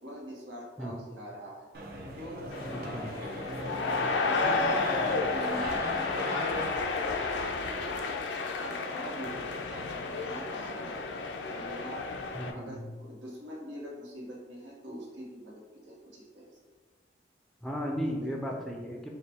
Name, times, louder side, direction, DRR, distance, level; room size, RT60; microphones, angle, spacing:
voice 1, 0.0-1.7 2.2-3.1 3.4-5.6 6.0-8.2 8.6-11.1 11.5-12.1 12.4-16.6 18.2-18.3, equal, 80° right, -3 dB, 1.1 m, -44 dB
sound 1, 1.7-6.7, right 1 dB, 55° right, 0.6 m, -36 dB
sound 2, 2.5-12.5, left 4 dB, 80° left, 0.4 m, -32 dB
voice 2, 2.7-3.1 12.3-12.9 17.6-19.1, equal, ahead, -1 dB, 0.4 m, -35 dB
4.9 x 2.2 x 4.2 m, 1.3 s
head